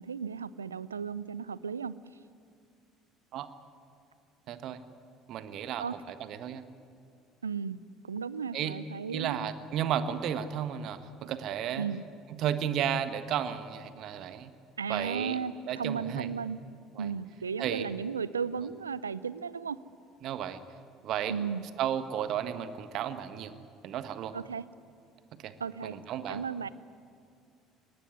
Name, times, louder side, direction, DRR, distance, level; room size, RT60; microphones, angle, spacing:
voice 1, 0.0-2.0 5.8-6.0 7.4-9.5 11.8-12.1 14.8-16.6 17.0-19.8 21.3-21.6 24.3-24.6 25.6-26.0 26.3-26.7, right 6 dB, 85° right, 19 dB, 0.5 m, -35 dB
voice 2, 4.5-4.8 5.3-6.6 8.5-8.7 9.1-11.9 12.4-14.5 14.9-15.4 15.7-16.3 16.9-17.1 17.6-17.9 20.2-20.6 21.0-21.3 21.8-23.5 23.8-24.3 25.4-25.5 25.8-26.4, right 9 dB, 55° right, 11 dB, 1.5 m, -33 dB
23.0 x 19.0 x 9.6 m, 2.4 s
figure-of-eight pair, 60°, 0 cm